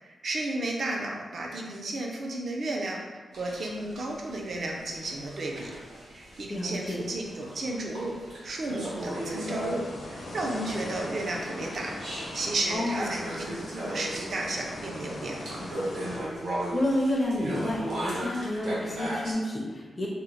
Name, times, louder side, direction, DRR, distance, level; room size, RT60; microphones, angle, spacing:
voice 1, 0.0-5.7 6.1-8.2 8.4-11.9 12.3-15.6, right 2 dB, 50° right, 0 dB, 0.5 m, -33 dB
sound 1, 3.3-19.3, right 1 dB, 75° right, 1.0 m, -38 dB
voice 2, 6.5-7.0 12.7-13.2 16.7-20.1, left 1 dB, 20° left, -3 dB, 0.4 m, -29 dB
sound 2, 8.9-16.2, left 1 dB, 60° left, 0.6 m, -40 dB
2.9 x 2.0 x 3.8 m, 1.3 s
wide cardioid pair, 160°, 0 cm